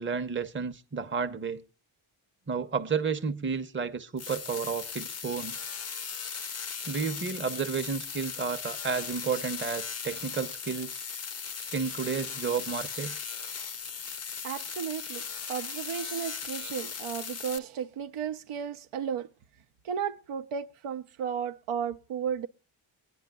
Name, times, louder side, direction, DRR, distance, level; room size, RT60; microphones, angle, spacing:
voice 1, 0.0-1.6 2.5-5.6 6.9-11.0 11.7-13.1, right 5 dB, 25° right, 0.7 m, -32 dB
sound 1, 4.2-17.6, left 6 dB, 35° left, 0.5 m, -38 dB
voice 2, 14.4-19.3 19.8-22.5, right 8 dB, 85° right, 0.7 m, -34 dB
23.5 x 9.8 x 2.2 m
wide cardioid pair, 120°, 50 cm